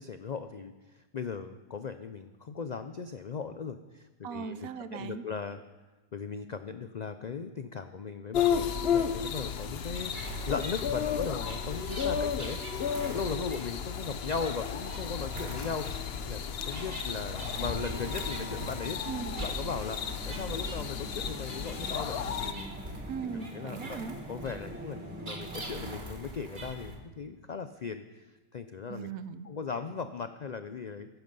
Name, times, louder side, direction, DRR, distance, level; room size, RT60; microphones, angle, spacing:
voice 1, 0.0-5.6 6.1-12.6 13.1-15.9 16.3-19.0 19.4-22.7 23.5-24.0 24.3-28.3 28.5-29.1 29.4-31.1, left 5 dB, 75° left, 9 dB, 0.4 m, -38 dB
voice 2, 4.2-5.2 19.0-19.3 23.1-24.2 28.9-29.5, right 6 dB, 85° right, 13 dB, 1.2 m, -38 dB
sound 1, 8.3-22.5, left 7 dB, 55° left, 0.9 m, -33 dB
sound 2, 9.9-26.9, right 1 dB, 35° right, 2.0 m, -43 dB
sound 3, 17.5-26.0, right 1 dB, 10° right, 0.4 m, -46 dB
15.0 x 12.0 x 5.4 m, 1.2 s
omnidirectional pair, 1.5 m